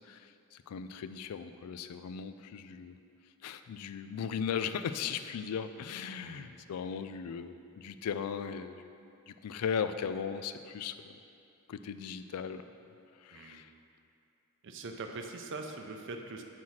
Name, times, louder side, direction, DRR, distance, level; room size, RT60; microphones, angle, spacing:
voice 1, 0.7-3.0 3.4-8.9 9.3-11.1 11.7-12.6 13.2-13.7, left 7 dB, 90° left, 11 dB, 0.3 m, -37 dB
voice 2, 6.2-6.6 13.3-13.6 14.6-16.4, right 3 dB, 55° right, 4 dB, 0.6 m, -42 dB
5.6 x 4.5 x 6.2 m, 2.7 s
head